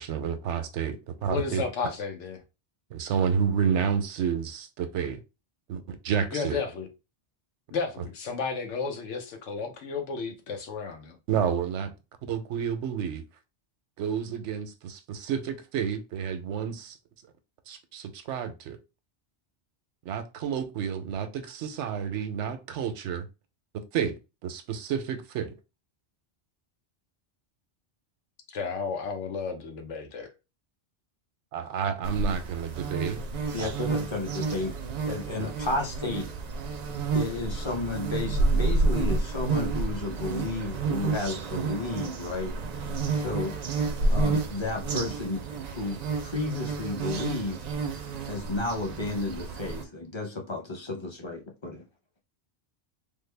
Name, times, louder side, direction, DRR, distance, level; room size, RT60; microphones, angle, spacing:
voice 1, 0.0-1.6 2.9-5.2 5.7-6.6 11.3-11.9 12.3-13.2 14.0-17.0 17.7-18.8 20.1-23.3 23.9-24.2 24.4-25.5 31.5-33.3 33.6-33.7 35.4-35.5, right 7 dB, 85° right, 0.9 m, -30 dB
voice 2, 1.3-2.4 6.3-6.9 7.7-11.2 28.5-30.3, left 5 dB, 90° left, 1.1 m, -33 dB
sound 1, 32.0-49.8, right 3 dB, 55° right, 0.4 m, -30 dB
voice 3, 33.5-34.7 35.1-36.3 37.1-42.6 43.1-43.6 44.1-47.6 48.2-51.8, left 2 dB, 30° left, 0.6 m, -32 dB
3.4 x 2.1 x 3.2 m
omnidirectional pair, 1.2 m